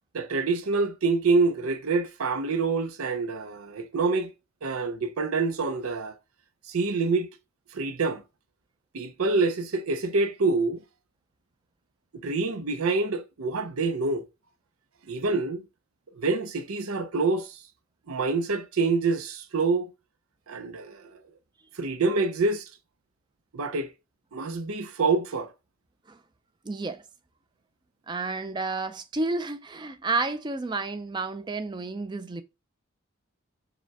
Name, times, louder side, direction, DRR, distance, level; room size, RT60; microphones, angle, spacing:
voice 1, 0.1-4.3 4.6-6.2 6.7-7.3 7.7-8.2 8.9-10.8 12.1-14.3 15.1-15.6 16.1-17.6 18.1-19.9 20.5-21.2 21.7-22.7 23.5-23.9 24.3-25.5, right 3 dB, 85° right, 0.6 m, -26 dB
voice 2, 26.6-27.0 28.1-32.4, right 3 dB, 20° right, 0.4 m, -31 dB
4.9 x 2.2 x 4.6 m
head